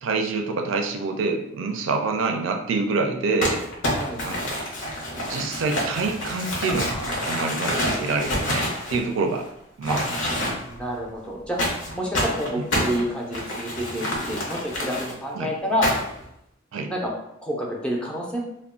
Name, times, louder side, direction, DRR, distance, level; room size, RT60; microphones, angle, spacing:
voice 1, 0.0-3.6 4.2-4.6 5.2-9.5 9.8-10.2 15.3-15.5 16.7-16.9, right 3 dB, 80° right, 4 dB, 0.4 m, -26 dB
Crumpling crinkling, 3.4-9.4 9.8-10.8 11.6-15.1 15.8-16.2, left 1 dB, 70° left, 0.8 m, -27 dB
voice 2, 10.6-11.6 11.9-15.9 16.9-17.1 17.4-18.4, equal, 5° left, -2 dB, 0.5 m, -28 dB
2.3 x 2.1 x 3.6 m, 0.79 s
head